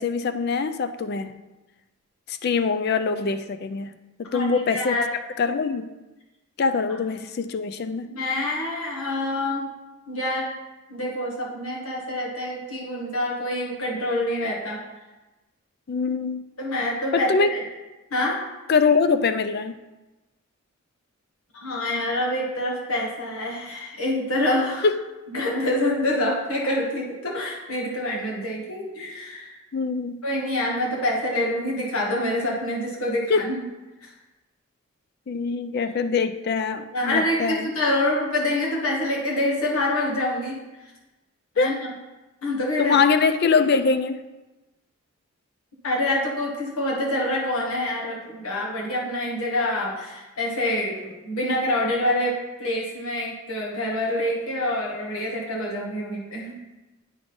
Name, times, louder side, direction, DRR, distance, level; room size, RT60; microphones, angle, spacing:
voice 1, 0.0-1.4 2.3-5.0 5.4-5.9 6.6-8.1 15.9-16.4 17.1-17.5 18.7-19.8 24.8-25.0 29.7-30.2 33.3-33.5 35.3-37.7 41.6-41.8 42.8-44.2, left 5 dB, 45° left, 11 dB, 0.4 m, -23 dB
voice 2, 4.3-5.1 8.1-9.7 10.1-10.5 10.9-14.8 16.6-17.6 18.1-18.4 21.5-24.9 25.3-29.5 30.2-33.5 34.0-34.1 36.9-40.6 41.5-41.9 42.4-43.0 45.8-56.6, left 1 dB, 85° left, -3 dB, 1.8 m, -26 dB
8.8 x 3.7 x 5.3 m, 1.1 s
head